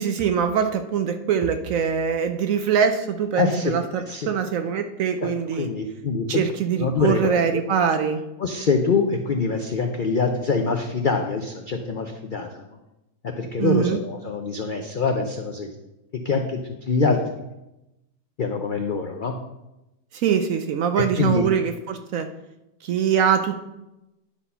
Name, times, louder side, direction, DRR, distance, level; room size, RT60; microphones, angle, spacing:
voice 1, 0.0-5.7 6.3-8.2 13.6-14.0 20.1-22.3 22.8-23.6, right 7 dB, 65° right, 8 dB, 0.8 m, -23 dB
voice 2, 3.4-3.8 4.1-4.3 5.2-5.3 5.6-6.4 6.8-7.6 8.4-12.5 13.4-15.7 16.2-16.6 16.9-17.2 18.4-19.3 21.2-21.5, left 4 dB, 75° left, 4 dB, 0.4 m, -24 dB
10.0 x 4.1 x 5.5 m, 0.94 s
omnidirectional pair, 1.8 m